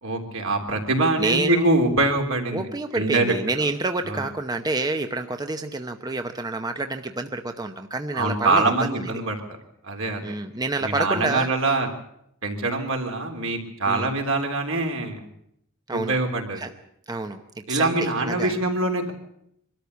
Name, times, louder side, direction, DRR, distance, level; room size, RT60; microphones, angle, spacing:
voice 1, 0.0-2.7 2.9-3.4 4.0-4.3 8.1-9.6 9.8-10.3 10.8-11.9 12.4-15.3 15.9-16.6 17.7-19.1, right 2 dB, 70° right, 3 dB, 3.5 m, -24 dB
voice 2, 1.2-1.7 2.5-9.1 10.2-11.7 13.8-14.1 15.9-16.1 16.6-16.7 17.1-18.6, right 2 dB, 20° right, 7 dB, 0.8 m, -28 dB
23.5 x 13.0 x 8.2 m, 0.76 s
head